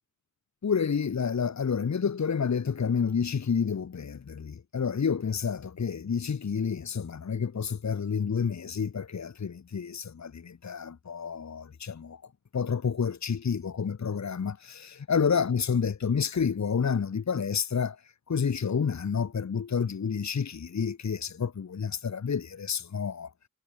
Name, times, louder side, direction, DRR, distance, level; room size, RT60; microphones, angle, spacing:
voice 1, 0.6-12.2 12.5-18.0 18.3-23.3, left 6 dB, 60° left, 1.4 m, -29 dB
wide cardioid pair, 75°, 32 cm